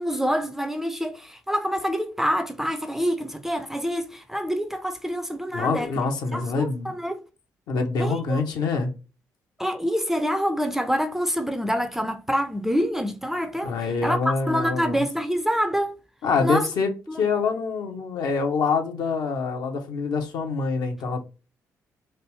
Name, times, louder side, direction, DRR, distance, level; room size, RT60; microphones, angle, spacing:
voice 1, 0.0-5.9 6.3-7.2 8.0-8.4 9.6-13.7 14.0-16.0 16.4-16.7 17.1-17.2, equal, 5° right, 0.5 m, -26 dB
voice 2, 5.5-6.9 7.7-8.9 13.6-15.0 16.2-21.2, left 4 dB, 55° left, 0.7 m, -25 dB
3.2 x 2.5 x 3.0 m
figure-of-eight pair, 40°, 8 cm